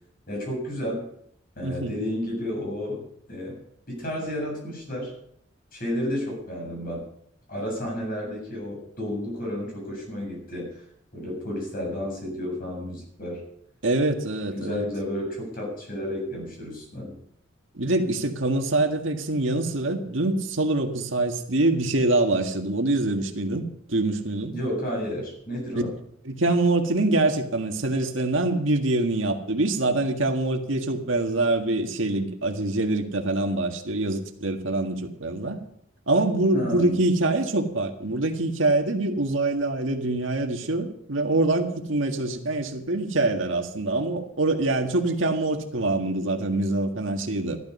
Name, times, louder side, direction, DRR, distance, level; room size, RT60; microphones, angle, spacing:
voice 1, 0.3-1.0 1.6-3.6 3.9-5.1 5.7-7.1 7.5-10.7 11.1-13.4 14.5-17.2 24.5-25.9 36.5-37.0, left 1 dB, 50° left, -1 dB, 7.5 m, -31 dB
voice 2, 1.6-1.9 13.8-14.9 17.8-24.6 26.3-35.6 36.1-47.6, right 2 dB, 90° right, 4 dB, 1.8 m, -25 dB
14.0 x 12.0 x 5.5 m, 0.71 s
head